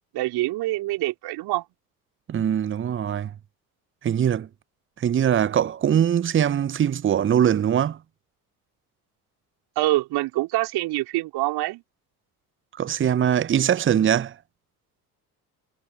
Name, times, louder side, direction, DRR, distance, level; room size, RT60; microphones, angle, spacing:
voice 1, 0.1-1.6 9.7-11.8, right 18 dB, 55° right, 4.9 m, -25 dB
voice 2, 2.3-3.3 4.0-4.5 5.0-8.0 12.8-14.3, right 9 dB, 25° right, 1.0 m, -22 dB
figure-of-eight pair, 55°, 45 cm